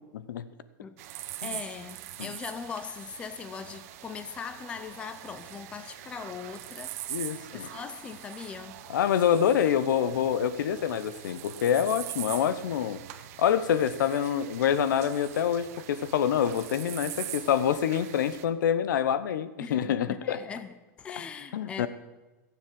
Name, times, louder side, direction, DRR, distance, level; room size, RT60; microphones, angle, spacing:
voice 1, 0.1-0.4 1.4-1.5 2.2-2.3 7.1-7.7 8.9-13.0 13.4-20.4 21.5-21.9, left 9 dB, 85° left, 0.9 m, -26 dB
sound 1, 1.0-18.4, right 13 dB, 50° right, 0.9 m, -43 dB
voice 2, 1.4-7.0 7.5-8.8 19.6-21.9, left 6 dB, 10° left, 0.5 m, -40 dB
16.0 x 7.4 x 7.6 m
supercardioid pair, 170°, 10 cm